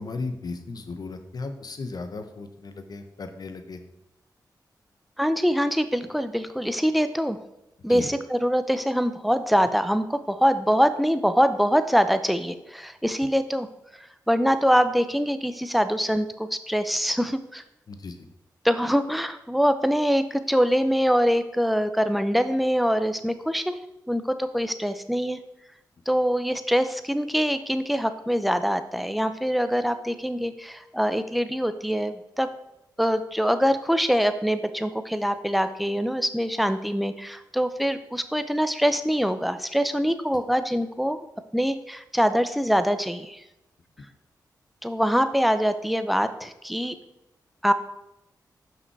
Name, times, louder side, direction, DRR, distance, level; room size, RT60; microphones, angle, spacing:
voice 1, 0.0-3.8 7.9-8.1 17.9-18.3, left 3 dB, 60° left, 8 dB, 0.9 m, -35 dB
voice 2, 5.2-7.4 7.8-13.7 14.0-17.6 18.6-23.8 24.1-25.4 26.1-32.5 33.0-41.2 41.5-43.4 44.8-46.9 47.6-47.7, equal, ahead, 10 dB, 0.6 m, -24 dB
6.0 x 5.6 x 4.6 m, 0.88 s
cardioid pair, 60°, 8 cm